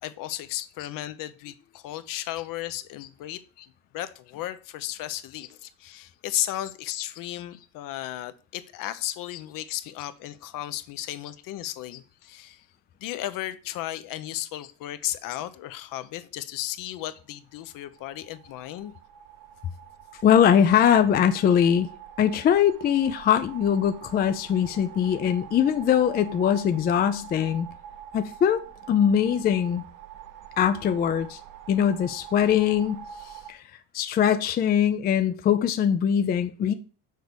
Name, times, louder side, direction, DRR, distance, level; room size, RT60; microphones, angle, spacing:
voice 1, 0.0-3.4 3.9-12.7 13.0-18.9, left 14 dB, 55° left, 0.8 m, -34 dB
sound 1, 17.6-33.5, right 9 dB, 50° right, 0.8 m, -45 dB
voice 2, 20.2-21.9 22.2-27.7 28.1-29.9 30.6-31.4 31.7-33.0 33.5-33.6 33.9-36.7, left 9 dB, 25° left, 0.4 m, -22 dB
6.5 x 4.7 x 6.8 m
cardioid pair, 155°, 40 cm